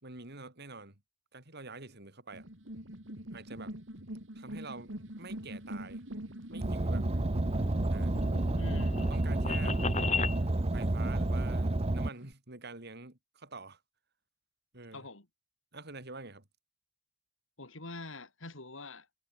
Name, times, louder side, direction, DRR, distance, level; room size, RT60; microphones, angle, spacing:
voice 1, 0.0-1.0 1.3-2.5 3.3-3.8 4.3-6.0 6.5-7.1 7.9-8.2 9.1-9.8 10.7-13.8 14.7-15.1 15.7-16.5, right 3 dB, 55° right, 4.3 m, -47 dB
sound 1, 2.3-12.3, right 1 dB, 75° right, 5.6 m, -44 dB
Car, 6.6-12.1, right 1 dB, 30° right, 0.9 m, -30 dB
sound 2, 7.3-10.4, left 5 dB, 35° left, 4.9 m, -36 dB
voice 2, 8.5-9.0 14.9-15.3 17.6-19.1, left 2 dB, 90° left, 4.6 m, -44 dB
head